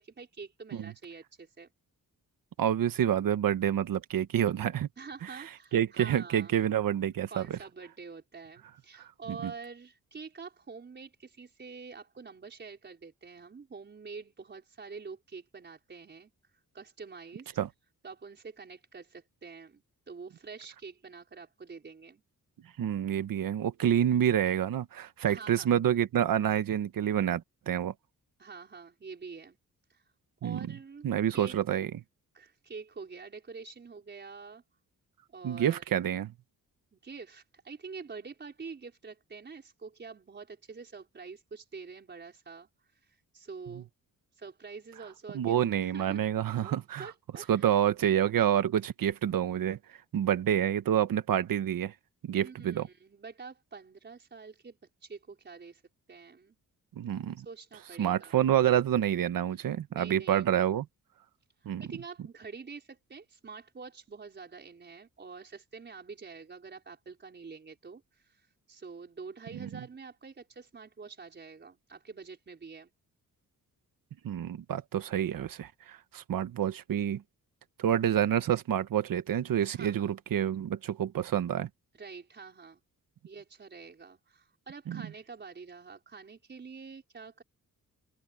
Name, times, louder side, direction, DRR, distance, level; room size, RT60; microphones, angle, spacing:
voice 1, 0.0-1.7 5.0-6.6 7.3-16.3 16.7-17.5 18.0-22.2 25.3-25.7 28.4-29.6 29.9-30.0 30.4-31.5 32.3-34.6 35.3-35.8 36.9-42.7 43.0-43.9 44.3-46.2 46.5-47.7 52.4-54.8 55.0-55.8 56.1-56.6 57.4-58.5 59.9-60.4 61.6-72.9 79.7-80.2 81.9-82.8 83.2-87.4, right 5 dB, 30° right, 4.8 m, -46 dB
voice 2, 2.6-4.9 5.7-7.6 9.3-9.5 17.6-17.7 22.8-27.9 30.4-30.6 31.0-31.9 35.4-36.3 45.3-47.1 47.5-49.8 50.1-51.9 52.2-52.9 56.9-57.4 58.0-60.9 61.6-61.8 69.5-69.8 74.2-77.2 77.8-81.7 84.9-85.1, right 10 dB, 85° right, 1.3 m, -28 dB
open air
wide cardioid pair, 175°, 33 cm